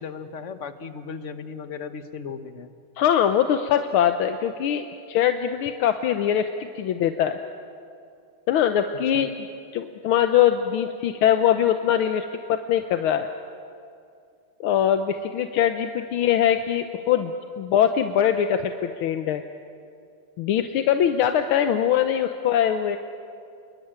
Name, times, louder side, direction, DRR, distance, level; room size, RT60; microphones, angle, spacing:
voice 1, 0.0-2.7 9.1-9.3, left 5 dB, 45° left, 9 dB, 1.2 m, -36 dB
voice 2, 3.0-7.4 8.5-9.3 9.7-13.3 14.6-19.4 20.4-23.0, left 9 dB, 85° left, 8 dB, 1.7 m, -22 dB
29.0 x 21.5 x 8.9 m, 2.4 s
omnidirectional pair, 2.3 m